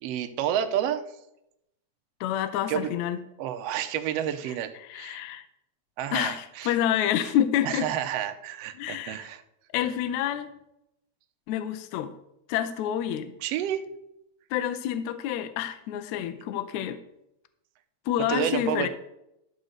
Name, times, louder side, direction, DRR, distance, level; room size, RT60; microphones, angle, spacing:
voice 1, 0.0-1.0 2.7-2.9 3.4-5.2 6.0-6.7 7.6-9.4 13.4-13.8 18.3-18.9, right 10 dB, 70° right, 7 dB, 1.7 m, -29 dB
voice 2, 2.2-3.2 4.5-5.5 6.1-7.9 8.8-9.3 9.7-10.5 11.5-12.1 12.5-13.3 14.5-17.0 18.1-18.9, left 10 dB, 80° left, 11 dB, 1.9 m, -28 dB
12.0 x 4.0 x 6.5 m, 0.83 s
omnidirectional pair, 3.4 m